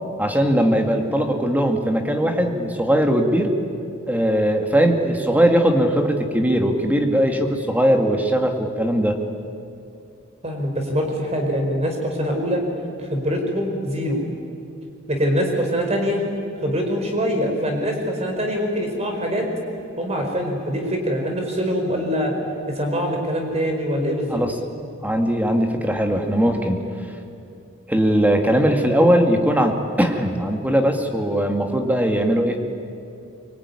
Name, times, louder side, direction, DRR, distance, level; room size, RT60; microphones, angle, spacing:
voice 1, 0.2-3.6 4.1-9.2 24.3-24.5 25.0-26.9 27.9-32.6, equal, 10° right, 4 dB, 2.1 m, -19 dB
voice 2, 10.4-12.6 13.0-14.2 15.1-16.2 16.6-19.5 20.0-22.3 22.7-24.4, equal, 30° right, 2 dB, 5.0 m, -23 dB
24.5 x 23.5 x 9.9 m, 2.6 s
head